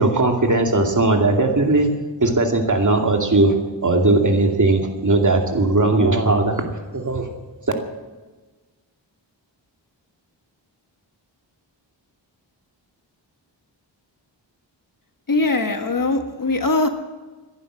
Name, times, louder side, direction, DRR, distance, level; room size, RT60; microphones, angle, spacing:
voice 1, 0.0-1.9 2.2-3.5 3.8-6.6 6.9-7.3, right 2 dB, 40° right, 3 dB, 2.5 m, -18 dB
voice 2, 15.3-16.9, left 2 dB, 45° left, 6 dB, 1.6 m, -21 dB
15.5 x 11.0 x 7.6 m, 1.2 s
wide cardioid pair, 70°, 45 cm